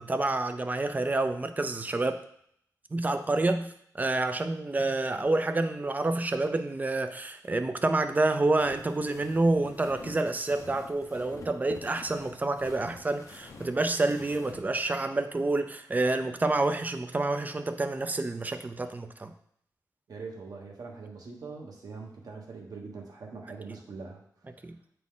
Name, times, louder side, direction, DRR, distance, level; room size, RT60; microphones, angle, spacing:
voice 1, 0.0-2.2 2.9-19.3 24.6-24.8, right 2 dB, 25° right, 9 dB, 0.5 m, -28 dB
sound 1, 8.6-14.6, left 3 dB, 50° left, 0.8 m, -48 dB
voice 2, 20.1-24.2, right 4 dB, 65° right, 0 dB, 1.4 m, -42 dB
8.2 x 4.2 x 3.7 m, 0.67 s
wide cardioid pair, 140°, 7 cm